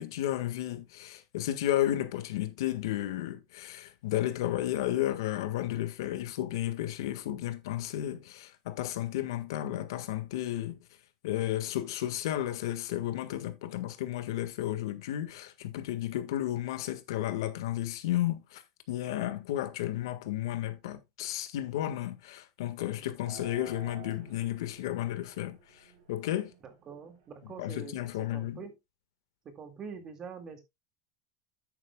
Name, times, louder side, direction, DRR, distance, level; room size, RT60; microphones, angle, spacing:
voice 1, 0.0-10.8 11.2-18.6 18.9-25.6 26.1-26.5 27.6-28.6, left 13 dB, 75° left, 1.7 m, -33 dB
sound 1, 23.2-28.4, right 5 dB, 70° right, 5.5 m, -53 dB
voice 2, 26.6-28.0 28.3-28.8 29.5-30.6, right 6 dB, 25° right, 2.1 m, -44 dB
11.0 x 8.8 x 2.3 m
supercardioid pair, 160°, 2 cm